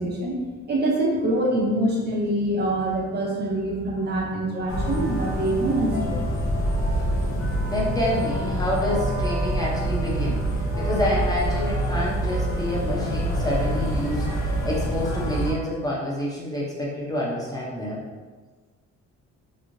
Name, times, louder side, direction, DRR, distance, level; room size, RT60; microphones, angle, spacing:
voice 1, 0.0-6.2, right 1 dB, 35° right, -2 dB, 0.5 m, -25 dB
sound 1, 4.7-15.5, right 1 dB, 65° left, 0.8 m, -26 dB
voice 2, 7.7-18.0, left 1 dB, 10° left, -5 dB, 0.5 m, -28 dB
3.0 x 2.6 x 2.5 m, 1.3 s
cardioid pair, 145°, 30 cm